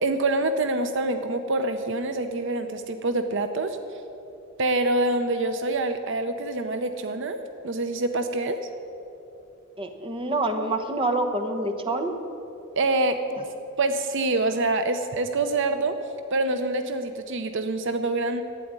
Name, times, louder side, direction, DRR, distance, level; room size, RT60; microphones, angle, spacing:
voice 1, 0.0-3.8 4.6-8.6 12.7-13.2 13.8-16.0 16.3-18.4, right 2 dB, 60° right, 8 dB, 0.7 m, -26 dB
voice 2, 9.8-12.1, right 2 dB, 25° right, 5 dB, 1.1 m, -26 dB
12.5 x 9.2 x 9.6 m, 2.9 s
head